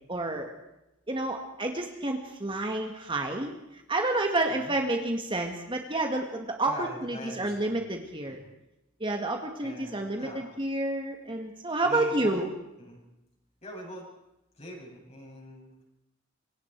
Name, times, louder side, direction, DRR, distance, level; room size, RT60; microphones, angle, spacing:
voice 1, 0.1-0.5 1.1-8.4 9.0-12.5, right 2 dB, 25° right, 3 dB, 1.9 m, -30 dB
voice 2, 6.6-7.8 8.3-8.4 9.6-10.5 11.8-12.4 12.8-13.0 13.6-14.1 14.5-15.8, equal, 35° left, -1 dB, 7.9 m, -43 dB
26.5 x 24.0 x 4.7 m, 0.92 s
head